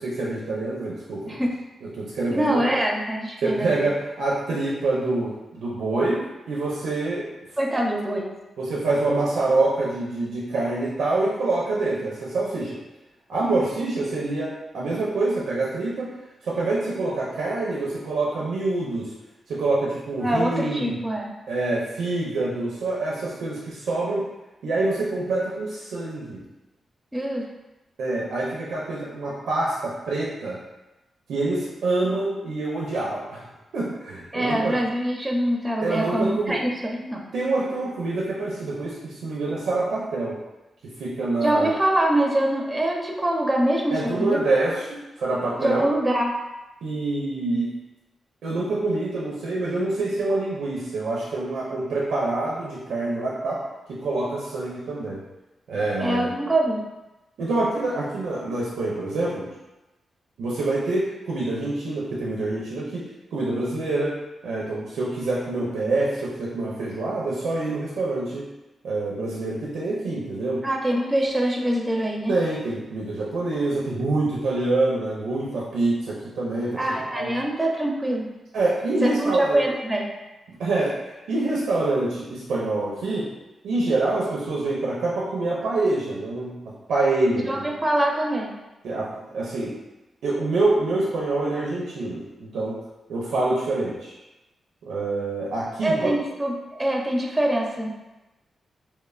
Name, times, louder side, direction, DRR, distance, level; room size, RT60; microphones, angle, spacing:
voice 1, 0.0-1.4 1.8-2.7 3.4-7.3 8.6-12.8 13.3-16.1 16.4-19.1 19.5-21.0 21.5-24.3 24.6-26.4 28.0-30.6 31.3-33.5 33.7-34.7 35.8-36.6 37.3-40.4 41.0-41.7 43.9-45.8 46.8-47.7 48.4-53.6 53.9-55.2 55.7-56.3 57.4-59.5 60.4-68.4 68.8-70.6 72.3-76.8 77.1-77.3 78.5-79.6 80.5-83.3 83.6-87.7 88.8-89.8 90.2-92.8 93.1-94.2 94.9-96.1, right 2 dB, 80° right, -5 dB, 0.4 m, -26 dB
voice 2, 2.3-3.9 7.6-8.3 20.2-21.3 27.1-27.5 34.3-37.2 41.4-44.4 45.6-46.4 56.0-56.8 70.6-72.3 76.8-78.3 79.0-80.1 87.5-88.5 95.8-97.9, right 1 dB, 20° right, 0 dB, 0.5 m, -24 dB
3.0 x 2.1 x 2.3 m, 1.0 s
supercardioid pair, 45°, 0 cm